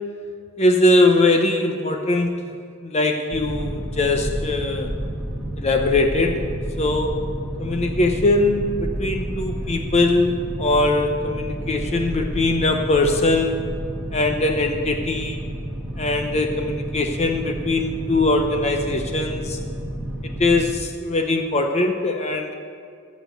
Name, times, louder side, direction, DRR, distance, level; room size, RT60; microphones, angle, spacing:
voice 1, 0.6-2.4 2.8-4.9 5.6-7.3 7.6-13.7 14.1-15.4 16.0-19.6 20.4-22.5, left 2 dB, 30° left, 4 dB, 0.7 m, -21 dB
Boat Water vehicle, 3.3-20.7, right 1 dB, 5° right, 1.2 m, -30 dB
14.5 x 6.3 x 6.9 m, 2.3 s
head